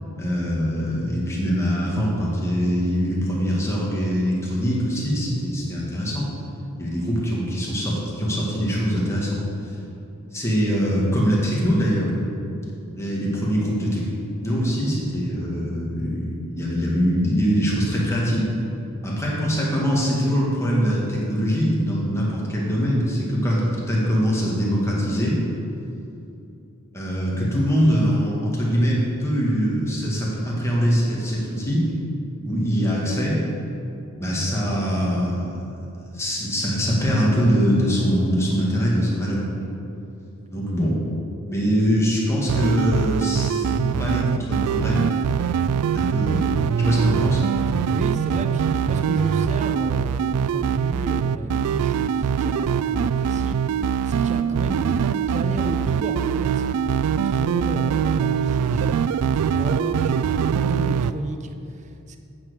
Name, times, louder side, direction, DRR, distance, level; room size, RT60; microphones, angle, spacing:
voice 1, 0.2-6.3 6.8-9.5 10.3-12.1 13.0-14.1 14.4-18.5 19.0-25.4 26.9-31.9 32.4-33.4 34.1-35.6 36.0-39.5 40.5-41.0 41.5-45.1 45.9-46.4 46.9-47.4, equal, 15° left, -5 dB, 1.9 m, -23 dB
sound 1, 42.5-61.1, right 7 dB, 85° right, 0.3 m, -23 dB
voice 2, 47.9-56.7 57.1-62.2, right 1 dB, 30° right, 6 dB, 0.6 m, -32 dB
8.8 x 6.0 x 6.4 m, 2.7 s
head